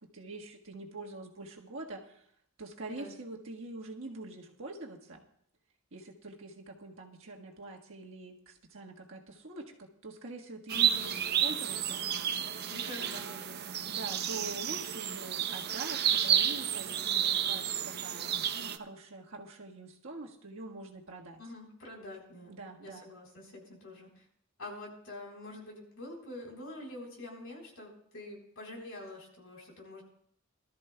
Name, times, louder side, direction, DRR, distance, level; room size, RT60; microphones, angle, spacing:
voice 1, 0.1-2.2 2.6-5.2 5.9-12.0 13.8-21.4 22.5-23.1, right 2 dB, 65° right, 0 dB, 1.6 m, -45 dB
voice 2, 10.7-11.1 12.7-13.6 21.4-22.5 22.8-24.2 24.6-30.0, left 2 dB, 65° left, -1 dB, 3.9 m, -45 dB
sound 1, 10.7-18.8, right 9 dB, 50° right, 0.6 m, -31 dB
22.0 x 13.0 x 2.3 m, 0.67 s
head